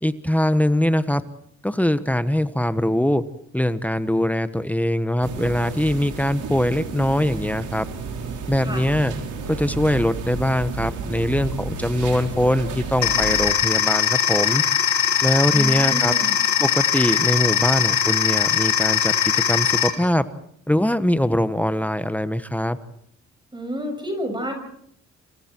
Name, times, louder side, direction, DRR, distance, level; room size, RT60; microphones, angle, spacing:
voice 1, 0.0-1.2 1.6-3.2 3.5-7.9 8.5-9.1 9.5-14.6 15.2-16.1 16.6-20.2 20.7-22.8, left 1 dB, 5° left, 12 dB, 1.2 m, -22 dB
sound 1, 5.2-13.4, right 4 dB, 80° right, 4.9 m, -32 dB
sound 2, 13.0-19.9, left 9 dB, 65° left, 4.3 m, -20 dB
voice 2, 15.5-16.4 23.5-24.5, equal, 15° right, 4 dB, 6.8 m, -30 dB
28.0 x 27.5 x 4.6 m, 0.68 s
cardioid pair, 90°, 30 cm